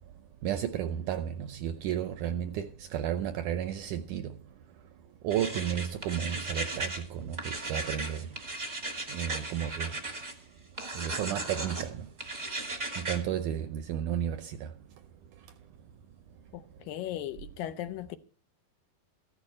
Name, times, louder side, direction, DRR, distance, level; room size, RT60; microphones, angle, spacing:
voice 1, 0.4-4.3 5.2-8.2 9.1-9.9 11.0-12.1 13.0-14.7, right 10 dB, 75° right, 1.9 m, -33 dB
sound 1, 5.3-7.0 7.3-10.3 10.8-11.9 12.2-13.2, right 2 dB, 30° right, 0.8 m, -36 dB
voice 2, 16.5-18.2, left 12 dB, 80° left, 2.3 m, -37 dB
15.0 x 11.0 x 4.3 m
omnidirectional pair, 4.3 m